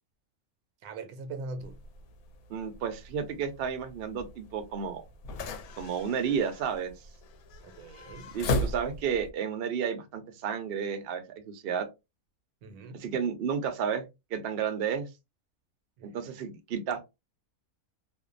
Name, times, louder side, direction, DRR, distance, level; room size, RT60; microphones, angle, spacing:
voice 1, 0.8-1.8 7.6-8.3 12.6-13.0 16.0-16.3, right 3 dB, 85° right, 1.1 m, -41 dB
sound 1, 1.6-9.3, left 2 dB, 75° left, 1.0 m, -37 dB
voice 2, 2.5-5.0 5.8-6.9 8.3-11.9 12.9-14.1 14.3-15.1 16.0-17.0, right 7 dB, 60° right, 0.6 m, -32 dB
2.6 x 2.2 x 2.4 m
omnidirectional pair, 1.6 m